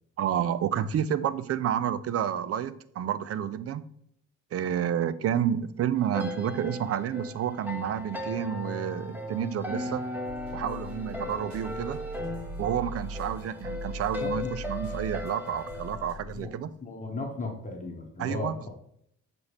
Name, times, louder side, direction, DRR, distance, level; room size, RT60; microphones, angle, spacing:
voice 1, 0.2-3.8 4.5-10.0 10.5-12.0 12.6-16.7 18.2-18.5, right 9 dB, 50° right, 15 dB, 0.4 m, -30 dB
sound 1, 5.9-16.1, left 2 dB, 5° right, 1.2 m, -37 dB
sound 2, 10.2-16.4, right 1 dB, 70° right, 2.2 m, -41 dB
voice 2, 14.2-14.6 16.3-16.5 16.8-18.6, left 3 dB, 25° left, 1 dB, 1.1 m, -35 dB
7.0 x 4.1 x 3.3 m, 0.70 s
cardioid pair, 90°, 30 cm